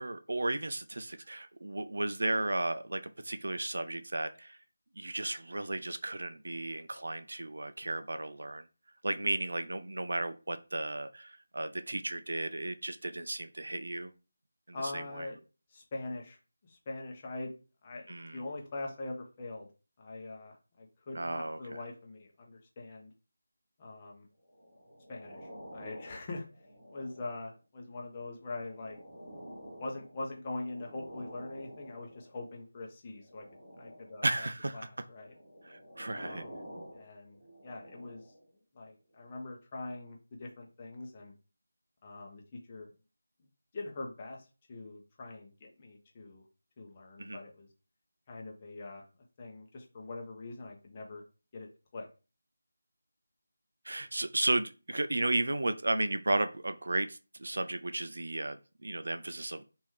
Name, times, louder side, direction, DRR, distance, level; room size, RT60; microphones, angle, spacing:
voice 1, 0.0-4.6 5.0-8.6 9.0-14.1 14.7-15.3 18.1-18.4 21.1-21.8 34.2-34.9 35.6-36.4 47.2-47.4 53.9-59.6, right 2 dB, 60° right, 10 dB, 0.3 m, -34 dB
voice 2, 14.7-15.4 15.7-17.5 17.8-19.7 20.0-23.1 23.8-24.2 25.1-26.4 26.9-29.0 29.8-33.5 33.8-34.5 34.7-35.3 36.1-36.6 36.9-37.4 37.6-38.2 38.7-41.3 42.0-42.4 42.7-42.9 43.7-46.4 46.8-47.7 48.3-49.0 49.4-51.2 51.5-52.1, left 2 dB, 25° left, 0 dB, 0.7 m, -43 dB
sound 1, 24.5-27.6 28.2-32.4 33.2-34.3 35.2-38.5 39.2-39.3, equal, 25° right, 1.3 m, -50 dB
3.1 x 2.6 x 3.3 m, 0.33 s
figure-of-eight pair, 160°, 0 cm